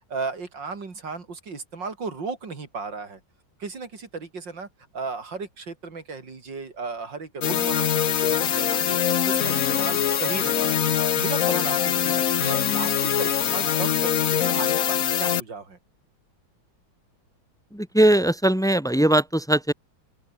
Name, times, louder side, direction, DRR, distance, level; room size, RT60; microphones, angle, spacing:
voice 1, 0.1-3.2 3.6-4.7 4.9-10.7 11.2-15.8, right 4 dB, 60° right, 3.9 m, -35 dB
sound 1, 7.4-15.4, left 9 dB, 50° left, 1.2 m, -23 dB
voice 2, 17.7-19.7, right 1 dB, ahead, 1.2 m, -20 dB
open air
omnidirectional pair, 2.2 m